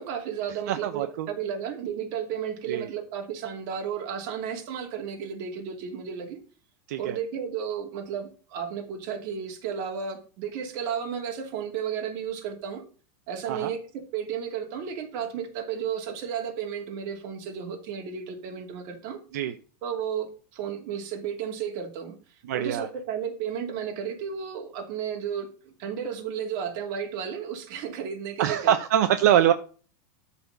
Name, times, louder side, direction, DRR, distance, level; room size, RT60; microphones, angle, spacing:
voice 1, 0.0-6.4 7.0-12.8 13.3-13.8 14.1-19.2 19.8-22.2 22.5-28.7, right 8 dB, 45° right, 3 dB, 2.6 m, -33 dB
voice 2, 0.7-1.3 2.7-2.9 6.9-7.2 13.5-13.7 19.3-19.6 22.5-22.9 28.4-29.5, right 11 dB, 70° right, 8 dB, 0.9 m, -23 dB
12.5 x 4.3 x 5.4 m, 0.38 s
supercardioid pair, 165°, 9 cm